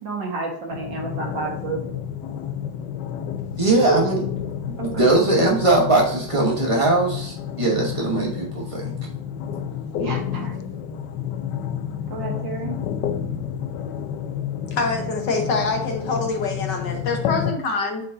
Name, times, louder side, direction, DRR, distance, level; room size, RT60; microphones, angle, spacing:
voice 1, 0.0-1.8 3.8-4.0 4.8-5.2 10.0-10.6 12.1-12.8, right 4 dB, 60° right, 0 dB, 2.2 m, -30 dB
sound 1, 0.7-17.5, left 8 dB, 75° left, 1.0 m, -30 dB
voice 2, 3.6-8.9, right 2 dB, 40° right, -2 dB, 0.4 m, -21 dB
voice 3, 14.7-18.0, left 3 dB, 60° left, 2 dB, 1.6 m, -25 dB
7.9 x 4.5 x 2.6 m, 0.64 s
omnidirectional pair, 2.4 m